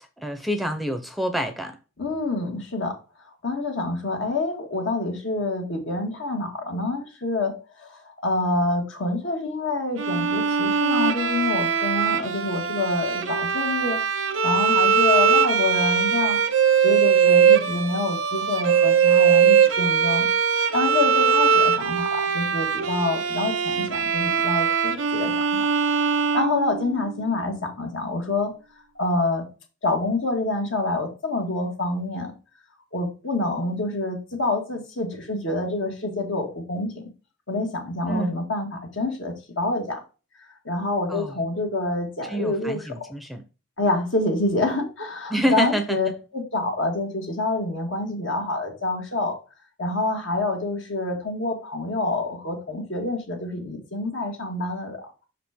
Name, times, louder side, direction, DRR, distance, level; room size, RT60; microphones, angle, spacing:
voice 1, 0.0-1.8 38.1-38.3 41.1-41.3 42.3-43.4 45.3-46.1, right 1 dB, ahead, 0.6 m, -27 dB
voice 2, 2.0-3.0 3.4-14.0 14.4-16.4 16.8-20.3 20.7-25.7 26.3-28.5 29.0-29.5 29.8-32.3 32.9-37.0 37.5-40.0 40.6-43.1 43.8-49.4 49.8-55.1, left 2 dB, 70° left, 2.1 m, -27 dB
Bowed string instrument, 10.0-27.2, right 6 dB, 85° right, 0.8 m, -21 dB
6.1 x 4.9 x 3.6 m
head